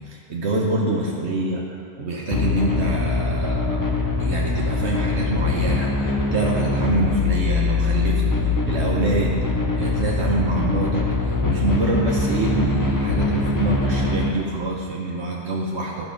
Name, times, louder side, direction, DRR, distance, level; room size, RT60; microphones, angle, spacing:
voice 1, 0.0-1.6 2.0-3.8 4.2-9.4 9.7-16.1, right 2 dB, 65° right, -2 dB, 1.1 m, -25 dB
sound 1, 2.3-14.3, left 3 dB, 20° left, 0.6 m, -23 dB
11.0 x 5.9 x 5.1 m, 2.6 s
omnidirectional pair, 1.3 m